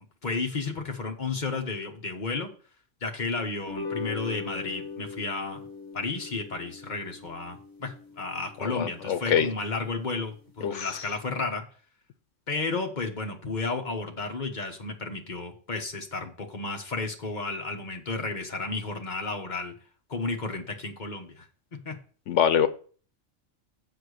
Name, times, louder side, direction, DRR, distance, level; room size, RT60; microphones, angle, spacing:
voice 1, 0.2-2.5 3.0-5.6 5.9-11.6 12.5-19.7 20.1-21.5 21.8-22.0, left 3 dB, 40° left, 3 dB, 1.4 m, -32 dB
sound 1, 3.6-10.1, left 4 dB, 15° left, 2.1 m, -41 dB
voice 2, 8.6-9.5 10.6-11.0 22.3-22.7, left 8 dB, 80° left, 11 dB, 1.1 m, -24 dB
7.8 x 4.5 x 6.5 m, 0.42 s
omnidirectional pair, 1.2 m